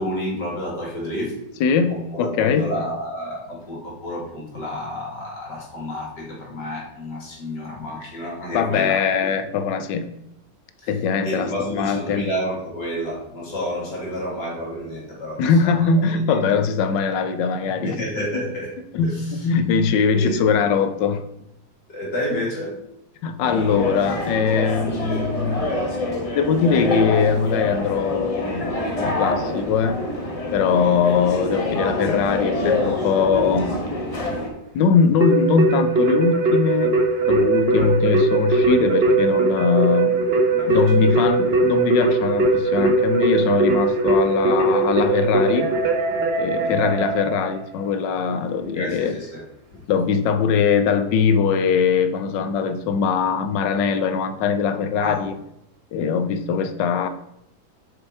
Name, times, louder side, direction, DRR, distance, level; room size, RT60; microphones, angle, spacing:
voice 1, 0.0-1.4 1.9-9.3 11.2-16.4 17.8-18.7 19.0-19.5 20.1-20.4 21.9-22.8 30.8-31.0 40.4-41.2 46.6-46.9 48.6-49.4 49.7-49.8 55.0-55.2, equal, 75° left, -3 dB, 3.1 m, -30 dB
voice 2, 1.6-2.7 8.5-10.1 10.9-12.3 15.4-18.0 18.9-21.2 23.2-25.9 26.3-30.0 30.5-33.7 34.7-37.0 37.3-40.2 40.7-45.7 46.4-49.1 49.9-55.4 55.9-57.1, left 6 dB, 90° left, 10 dB, 1.3 m, -21 dB
sound 1, 23.4-34.5, left 1 dB, 25° left, 0.9 m, -26 dB
Keyboard (musical), 35.2-47.6, right 3 dB, 45° right, 1.0 m, -20 dB
6.8 x 5.4 x 4.6 m, 0.81 s
omnidirectional pair, 1.9 m